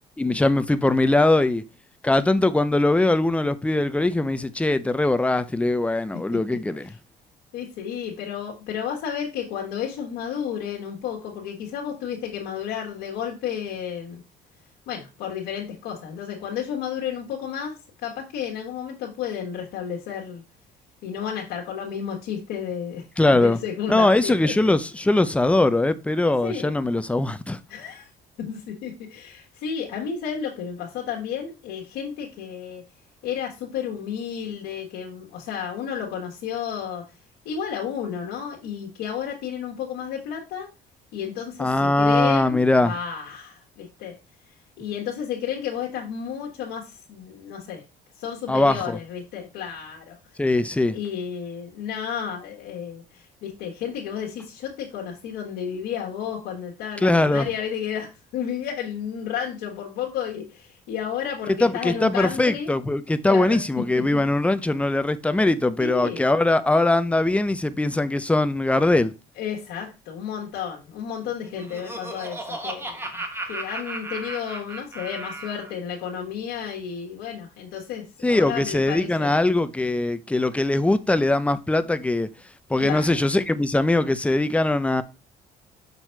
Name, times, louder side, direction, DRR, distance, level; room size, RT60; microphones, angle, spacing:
voice 1, 0.2-1.6 2.0-6.9 23.2-23.6 23.9-27.6 41.6-42.9 48.5-49.0 50.4-51.0 57.0-57.5 61.6-69.1 78.2-82.3 82.7-85.0, left 2 dB, 5° left, 0.5 m, -21 dB
voice 2, 7.5-14.2 14.9-17.7 18.0-20.4 21.0-24.7 26.4-26.8 27.7-28.1 28.4-32.8 33.2-37.0 37.4-40.7 41.1-44.2 44.8-47.8 48.2-50.2 50.9-62.7 63.3-63.6 63.9-64.2 65.8-66.2 69.4-73.1 73.5-79.3 82.8-83.2, left 8 dB, 90° left, 1.5 m, -32 dB
Laughter, 71.3-75.7, right 1 dB, 15° right, 1.3 m, -35 dB
6.3 x 4.1 x 4.5 m
cardioid pair, 110°, 17 cm